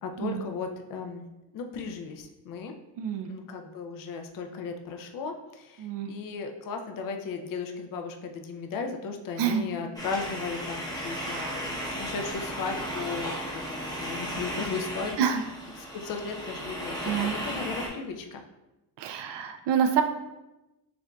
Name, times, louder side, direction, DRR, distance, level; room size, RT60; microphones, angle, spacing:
voice 1, 0.0-1.2 1.5-2.7 3.3-15.2 15.8-18.4, left 5 dB, 50° left, 4 dB, 0.5 m, -36 dB
voice 2, 3.0-3.3 5.8-6.1 9.4-9.6 11.2-11.7 15.2-15.4 17.0-17.3 19.0-20.0, right 8 dB, 65° right, 6 dB, 0.5 m, -27 dB
sound 1, 9.9-17.9, equal, 10° left, 0.8 m, -35 dB
6.9 x 2.4 x 2.2 m, 1.0 s
cardioid pair, 120°, 45 cm